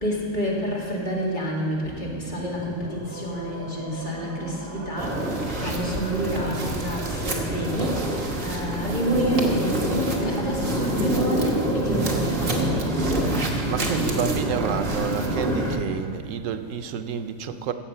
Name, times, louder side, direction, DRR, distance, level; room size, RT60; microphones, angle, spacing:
voice 1, 0.0-8.1 8.4-13.6, equal, 40° left, -4 dB, 2.2 m, -28 dB
sound 1, 1.8-8.3, right 1 dB, 15° right, 1.1 m, -40 dB
sound 2, 3.1-15.5, right 1 dB, 10° left, 1.6 m, -49 dB
sound 3, 5.0-15.8, right 1 dB, 50° right, 1.6 m, -26 dB
voice 2, 13.6-17.7, right 7 dB, 85° right, 9 dB, 1.0 m, -29 dB
15.0 x 7.5 x 5.5 m, 2.2 s
omnidirectional pair, 1.3 m